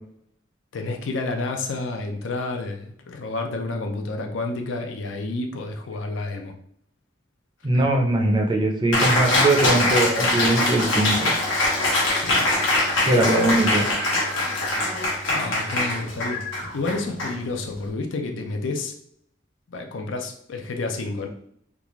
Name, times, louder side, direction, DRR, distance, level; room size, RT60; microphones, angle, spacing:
voice 1, 0.7-6.5 7.7-7.8 12.1-12.6 15.3-16.4 16.7-18.9 19.7-21.3, left 3 dB, 75° left, 4 dB, 0.5 m, -30 dB
voice 2, 7.6-11.3 13.0-13.9, right 1 dB, 25° right, 1 dB, 0.5 m, -21 dB
Cheering, 8.9-17.9, left 2 dB, 90° left, 1.2 m, -23 dB
3.5 x 2.4 x 3.0 m, 0.69 s
head